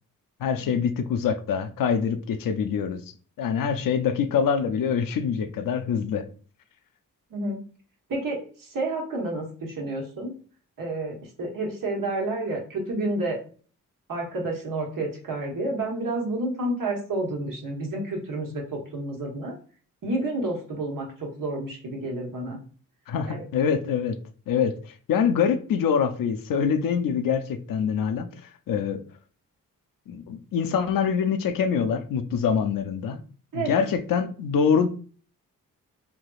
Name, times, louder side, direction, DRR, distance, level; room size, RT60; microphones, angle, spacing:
voice 1, 0.4-3.0 3.4-6.3 23.1-24.2 24.5-28.3 28.7-29.0 30.1-33.2 33.5-34.9, left 7 dB, 70° left, 0.5 m, -25 dB
voice 2, 8.1-10.3 10.8-13.4 14.1-19.5 20.0-22.6 23.3-23.4 33.5-33.7, right 2 dB, 70° right, 1.2 m, -30 dB
3.3 x 2.8 x 2.3 m
cardioid pair, 70°, 34 cm